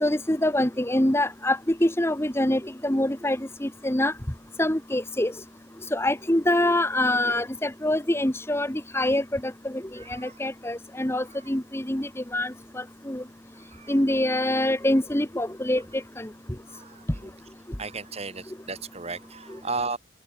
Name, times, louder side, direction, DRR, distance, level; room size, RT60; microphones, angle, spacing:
voice 1, 0.0-4.1 4.6-5.3 5.9-13.2 13.9-16.3, left 1 dB, 15° left, 1.3 m, -25 dB
voice 2, 9.9-10.4 11.3-11.4 13.6-14.0 16.7-17.3 17.8-20.0, right 4 dB, 30° right, 2.8 m, -35 dB
open air
head